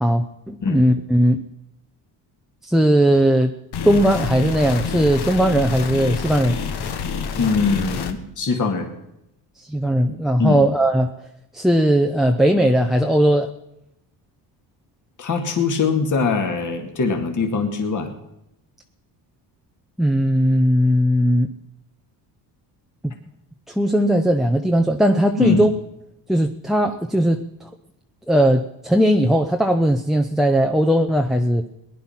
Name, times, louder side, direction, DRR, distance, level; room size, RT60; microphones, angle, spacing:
voice 1, 0.0-1.4 2.6-3.5 3.8-6.6 9.6-11.1 11.5-13.5 20.0-21.5 23.7-25.7 26.3-27.7 28.3-31.7, equal, ahead, 5 dB, 0.7 m, -18 dB
sound 1, 3.7-8.1, left 6 dB, 60° left, 1.5 m, -27 dB
voice 2, 7.4-8.9 10.4-10.6 15.2-18.1 25.4-25.6, left 4 dB, 40° left, 4 dB, 2.4 m, -22 dB
19.5 x 10.5 x 5.8 m, 0.85 s
cardioid pair, 110°, 45 cm